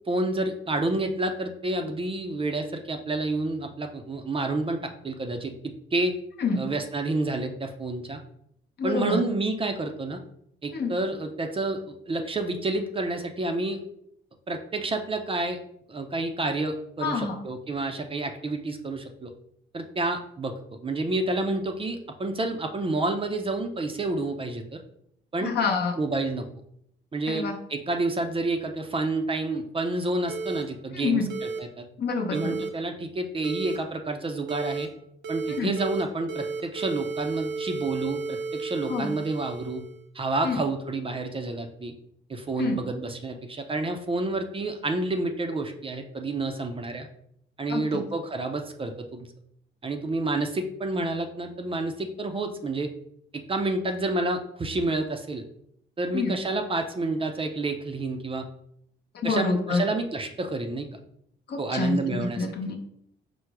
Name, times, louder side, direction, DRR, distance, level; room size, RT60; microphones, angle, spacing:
voice 1, 0.1-6.1 6.5-8.2 8.8-10.2 10.6-13.8 14.5-15.6 15.9-19.3 19.7-24.8 25.3-25.5 26.0-26.4 27.1-31.9 32.3-34.9 35.3-39.8 40.1-41.9 42.3-47.1 47.6-49.3 49.8-52.9 53.3-55.4 56.0-58.5 59.2-60.9 61.6-62.5, right 2 dB, 25° right, 5 dB, 0.5 m, -29 dB
voice 2, 8.8-9.2 10.7-10.9 17.0-17.4 25.4-25.9 27.3-27.5 30.9-31.3 32.0-32.6 35.5-35.7 38.9-39.1 40.4-40.6 42.6-42.8 47.7-48.0 56.1-56.3 59.1-59.8 61.5-62.8, left 4 dB, 55° left, 2 dB, 0.8 m, -27 dB
heart stop, 30.3-30.6 31.3-31.6 32.3-32.7 33.4-33.8 34.5-34.9 35.2-36.0 36.3-40.0, right 4 dB, 75° right, 0.7 m, -33 dB
4.5 x 2.0 x 4.6 m, 0.72 s
cardioid pair, 90°, 20 cm